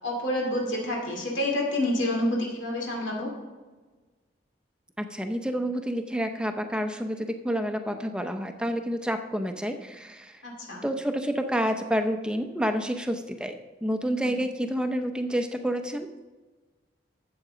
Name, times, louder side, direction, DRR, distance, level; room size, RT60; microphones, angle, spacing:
voice 1, 0.0-3.3 10.4-10.8 14.2-14.4, left 1 dB, 90° left, -2 dB, 2.4 m, -28 dB
voice 2, 5.0-10.4 10.8-13.6 13.8-16.1, equal, 5° right, 6 dB, 0.6 m, -29 dB
12.5 x 7.8 x 3.8 m, 1.3 s
head